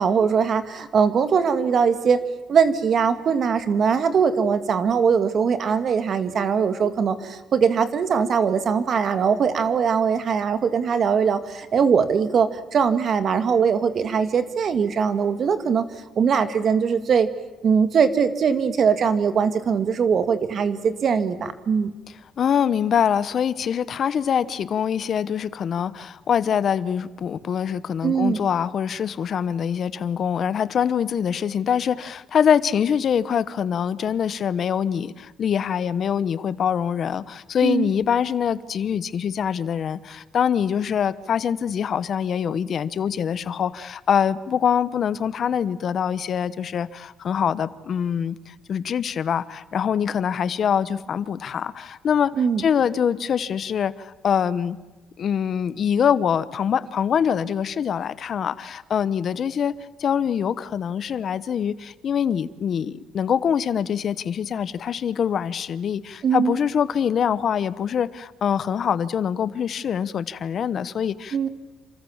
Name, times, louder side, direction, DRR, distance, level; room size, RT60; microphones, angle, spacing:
voice 1, 0.0-17.3 17.6-21.9 28.0-28.4 37.6-37.9 52.4-52.6 66.2-66.6 71.3-71.5, right 6 dB, 50° right, 10 dB, 2.1 m, -21 dB
voice 2, 22.4-52.3 52.6-54.8 55.2-71.5, left 8 dB, 50° left, 16 dB, 1.0 m, -24 dB
28.5 x 26.5 x 7.3 m, 1.2 s
cardioid pair, 105°, 0 cm